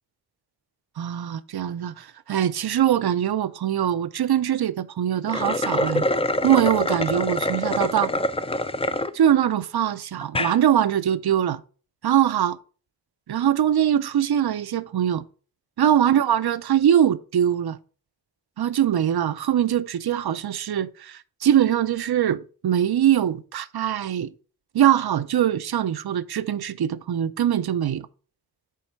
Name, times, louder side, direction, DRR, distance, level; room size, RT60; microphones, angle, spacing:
voice 1, 1.0-6.0 6.4-8.1 9.1-11.6 12.0-12.6 13.3-15.2 15.8-17.8 18.6-24.3 24.7-28.1, right 10 dB, 65° right, 0.5 m, -22 dB
sound 1, 5.2-9.1 9.6-9.7 10.2-10.6, left 1 dB, 15° left, 0.4 m, -25 dB
8.3 x 3.2 x 4.4 m
cardioid pair, 40°, 41 cm